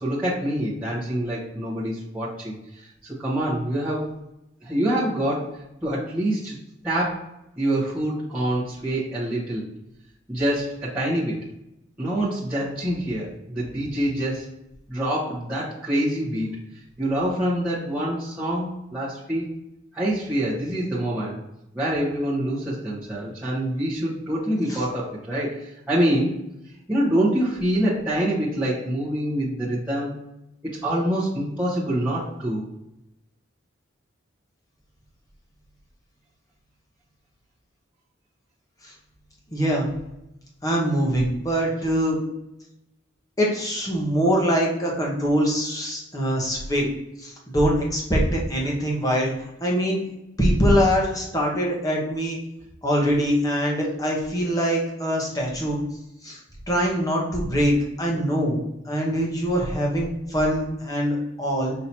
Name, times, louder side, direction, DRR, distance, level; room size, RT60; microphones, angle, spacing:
voice 1, 0.0-4.1 4.6-5.5 5.8-6.5 6.8-7.2 7.6-9.6 10.3-11.4 12.0-14.5 14.9-16.6 17.0-19.5 19.9-21.4 21.7-26.4 26.9-30.1 30.6-32.6, right 1 dB, 10° right, -11 dB, 1.0 m, -25 dB
voice 2, 39.5-39.9 40.6-42.2 43.4-46.9 47.2-50.0 50.4-52.4 52.8-55.8 56.2-56.4 56.7-61.7, equal, 15° left, -2 dB, 0.9 m, -23 dB
5.7 x 3.0 x 2.7 m, 0.88 s
head